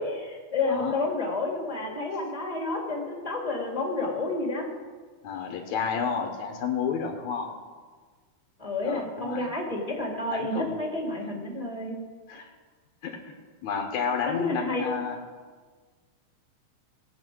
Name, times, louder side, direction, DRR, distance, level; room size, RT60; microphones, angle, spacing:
voice 1, 0.0-4.7 8.6-12.0 14.2-14.9, left 2 dB, 10° left, 0 dB, 2.5 m, -30 dB
voice 2, 5.2-7.5 8.8-9.5 10.3-10.7 12.3-12.5 13.0-13.3 13.6-15.2, left 6 dB, 80° left, 2 dB, 2.5 m, -31 dB
18.5 x 8.7 x 6.3 m, 1.5 s
omnidirectional pair, 3.3 m